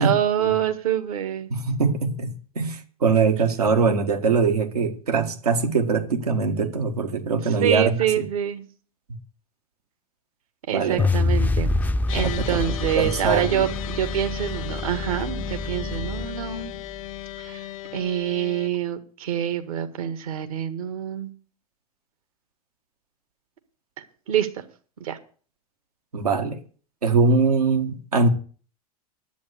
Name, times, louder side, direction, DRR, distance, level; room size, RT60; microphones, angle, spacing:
voice 1, 0.0-1.5 7.6-8.6 10.7-11.7 12.1-16.7 17.4-17.6 17.9-21.3 24.0-24.6 25.0-25.2, right 10 dB, 70° right, 1.7 m, -26 dB
voice 2, 1.5-8.2 10.7-11.1 12.1-12.6 12.9-13.7 26.1-26.6 27.0-28.3, right 4 dB, 85° right, 1.7 m, -22 dB
sound 1, 11.0-17.2, left 2 dB, 10° left, 0.5 m, -27 dB
sound 2, 12.1-18.7, left 15 dB, 60° left, 0.8 m, -36 dB
10.5 x 8.5 x 8.3 m
hypercardioid pair, 90°, 19 cm